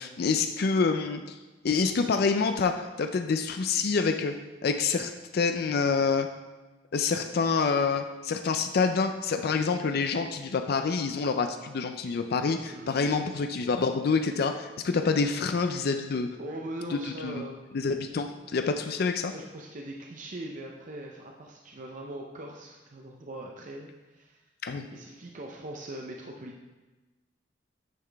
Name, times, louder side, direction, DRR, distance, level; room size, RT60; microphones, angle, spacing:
voice 1, 0.0-1.4 1.6-4.3 4.6-6.3 6.9-16.3 16.9-17.4 17.7-19.3 24.6-24.9, left 4 dB, 55° left, 7 dB, 0.4 m, -27 dB
voice 2, 12.6-13.2 16.4-17.6 19.2-24.4 24.9-26.6, right 1 dB, 45° right, 0 dB, 0.6 m, -41 dB
9.3 x 5.8 x 3.4 m, 1.2 s
head